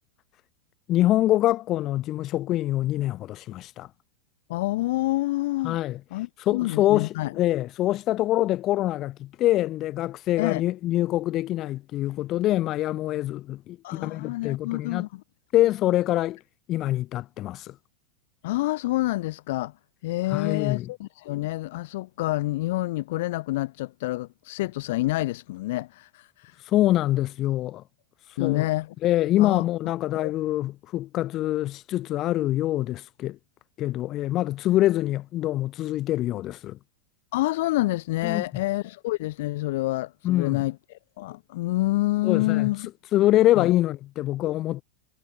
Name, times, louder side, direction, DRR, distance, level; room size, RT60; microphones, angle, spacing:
voice 1, 0.9-3.9 5.6-6.0 6.4-15.0 15.5-16.4 16.7-17.7 20.3-20.9 26.7-27.8 28.4-28.6 29.0-33.4 33.8-36.8 38.2-38.5 40.2-40.7 42.2-42.7 43.1-44.8, left 14 dB, 35° left, 2.6 m, -25 dB
voice 2, 4.5-5.8 6.1-7.3 10.4-10.6 13.8-15.2 18.4-19.7 20.0-26.6 28.4-28.9 29.4-29.6 30.1-30.3 37.3-42.9 43.6-43.7, left 18 dB, 50° left, 0.7 m, -28 dB
figure-of-eight pair, 90°, 0 cm